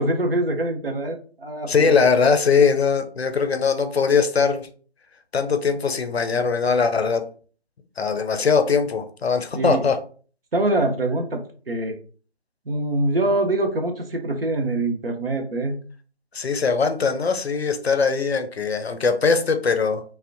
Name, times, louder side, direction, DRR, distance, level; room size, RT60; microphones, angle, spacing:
voice 1, 0.0-2.0 9.5-9.8 10.5-11.4 11.7-12.0 12.7-15.8, right 2 dB, 60° right, 4 dB, 0.6 m, -24 dB
voice 2, 1.7-4.7 5.3-7.3 8.0-10.0 16.3-20.0, left 5 dB, 70° left, 7 dB, 0.5 m, -21 dB
2.5 x 2.1 x 2.5 m, 0.41 s
figure-of-eight pair, 170°, 33 cm